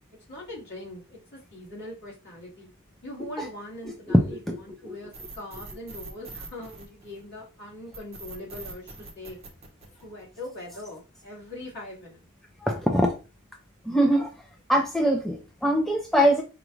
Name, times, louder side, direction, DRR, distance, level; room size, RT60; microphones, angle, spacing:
voice 1, 0.3-2.7 3.0-9.4 10.0-12.3, left 1 dB, 50° left, -4 dB, 2.1 m, -41 dB
sound 1, 5.1-7.4 7.9-10.4, right 3 dB, 25° right, 0.9 m, -42 dB
voice 2, 12.6-13.1 13.9-14.3 14.7-16.4, equal, ahead, 2 dB, 0.4 m, -22 dB
5.0 x 2.5 x 3.0 m, 0.32 s
head